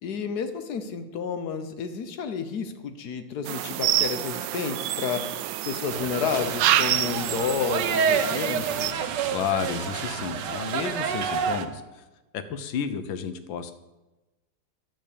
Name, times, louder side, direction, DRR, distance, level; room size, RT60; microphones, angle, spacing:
voice 1, 0.0-5.3 5.7-9.0, left 6 dB, 65° left, 8 dB, 1.3 m, -31 dB
sound 1, 3.5-8.9, right 13 dB, 90° right, 1.3 m, -28 dB
sound 2, 5.9-11.6, right 6 dB, 70° right, 1.4 m, -28 dB
voice 2, 9.3-12.0 12.3-13.7, left 7 dB, 85° left, 11 dB, 1.6 m, -31 dB
10.0 x 6.6 x 8.5 m, 1.1 s
omnidirectional pair, 2.0 m